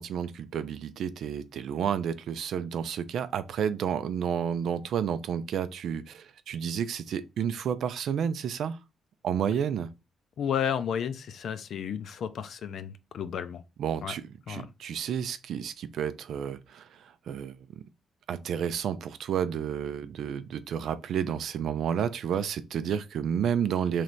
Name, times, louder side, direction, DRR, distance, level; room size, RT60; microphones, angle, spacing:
voice 1, 0.0-8.8 9.2-9.9 13.8-16.9 17.3-17.6 18.3-24.0, right 8 dB, 75° right, 0.4 m, -31 dB
voice 2, 10.4-13.6 14.0-14.1 14.5-14.7, left 8 dB, 65° left, 0.5 m, -32 dB
3.2 x 3.1 x 4.0 m
cardioid pair, 105°, 0 cm